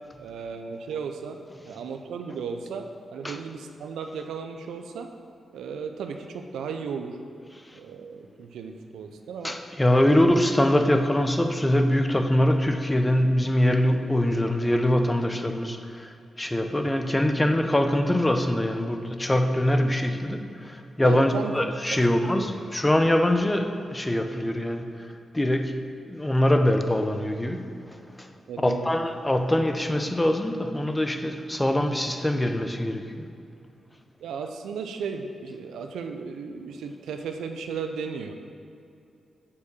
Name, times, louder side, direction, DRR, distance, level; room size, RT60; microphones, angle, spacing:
voice 1, 0.2-1.4 1.7-5.1 5.5-7.2 7.7-9.6 21.0-21.5 21.9-22.0 22.3-22.5 28.5-28.9 34.2-38.3, right 6 dB, 85° right, 6 dB, 0.5 m, -35 dB
voice 2, 9.4-16.1 16.4-24.9 25.3-25.8 26.0-28.3 28.6-33.2, left 1 dB, 20° left, 6 dB, 0.8 m, -23 dB
6.9 x 4.8 x 6.9 m, 2.6 s
supercardioid pair, 45°, 0 cm